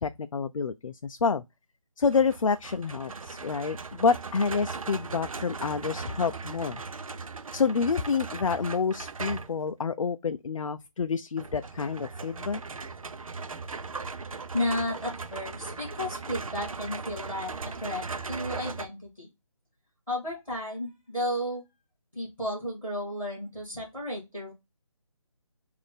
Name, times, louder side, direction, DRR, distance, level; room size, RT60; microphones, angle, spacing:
voice 1, 0.0-1.4 2.0-6.8 7.5-12.6, left 5 dB, 70° left, 0.4 m, -28 dB
sound 1, 2.1-9.6 11.4-18.9, right 4 dB, 80° right, 0.6 m, -38 dB
voice 2, 14.5-19.3 20.1-21.6 22.1-24.5, left 1 dB, ahead, 0.6 m, -33 dB
4.1 x 2.6 x 3.2 m
figure-of-eight pair, 180°, 17 cm